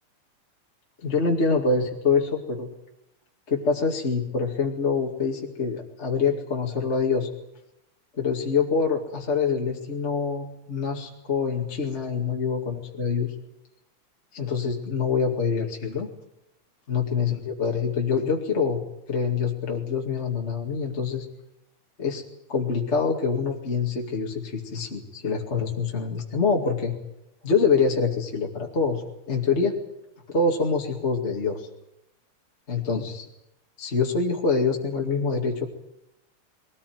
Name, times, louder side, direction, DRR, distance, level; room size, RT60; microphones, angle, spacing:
voice 1, 1.0-2.7 3.5-7.3 8.1-13.3 14.3-16.1 16.9-18.8 19.1-21.3 22.0-22.2 22.5-26.9 27.4-29.7 30.3-31.7 32.7-33.2 33.8-35.7, left 5 dB, 25° left, 0 dB, 2.3 m, -25 dB
21.5 x 19.0 x 9.5 m, 0.82 s
omnidirectional pair, 3.4 m